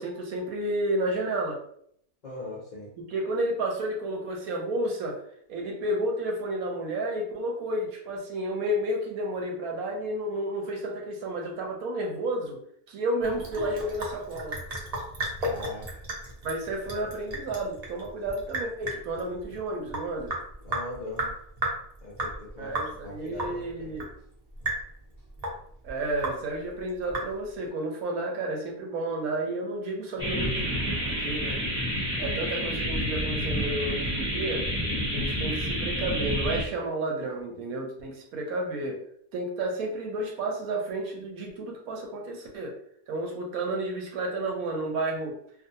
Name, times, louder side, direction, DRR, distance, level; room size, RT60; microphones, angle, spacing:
voice 1, 0.0-1.6 3.1-5.2 5.5-12.6 12.9-14.6 16.4-20.3 22.6-24.1 25.8-31.6 32.2-34.7 35.1-39.0 39.3-42.7 43.1-45.3, right 1 dB, 75° right, 1 dB, 1.0 m, -31 dB
voice 2, 2.2-2.9 15.4-16.0 20.6-21.3 22.0-22.7 23.0-23.9 30.2-30.4, left 2 dB, 55° left, -6 dB, 0.5 m, -40 dB
Sink (filling or washing) / Drip, 13.2-27.7, right 1 dB, 55° right, 0.4 m, -35 dB
sound 1, 30.2-36.6, equal, 5° right, 0.6 m, -29 dB
2.5 x 2.3 x 2.7 m, 0.67 s
omnidirectional pair, 1.6 m